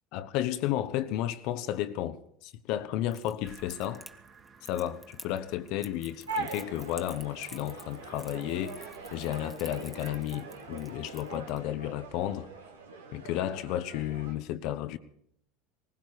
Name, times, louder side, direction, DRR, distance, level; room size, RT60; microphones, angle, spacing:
voice 1, 0.1-4.1 4.7-12.5 13.1-15.0, left 12 dB, 60° left, 0.8 m, -33 dB
Crackle, 3.1-11.6, left 1 dB, ahead, 1.2 m, -50 dB
sound 1, 3.4-11.3, right 4 dB, 40° right, 2.6 m, -57 dB
sound 2, 6.3-14.3, right 3 dB, 90° right, 1.7 m, -42 dB
18.5 x 16.0 x 4.8 m
hypercardioid pair, 80°, 0 cm